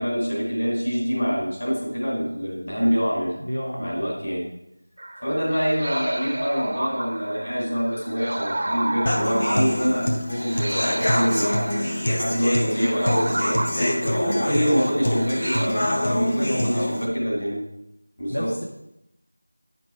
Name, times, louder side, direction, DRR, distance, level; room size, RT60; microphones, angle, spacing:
voice 1, 0.0-3.4 3.8-4.4 5.2-11.7 12.2-13.6 14.1-17.7 18.2-18.5, equal, 45° left, -4 dB, 3.6 m, -25 dB
voice 2, 3.4-4.1 13.7-15.1 15.8-16.9 18.3-18.6, equal, 75° left, -1 dB, 1.6 m, -31 dB
sound 1, 5.0-15.7, right 1 dB, 35° right, 0.6 m, -32 dB
Human voice / Acoustic guitar, 9.1-17.0, left 1 dB, 20° left, 0.7 m, -25 dB
9.8 x 6.0 x 4.7 m, 0.83 s
figure-of-eight pair, 180°, 0 cm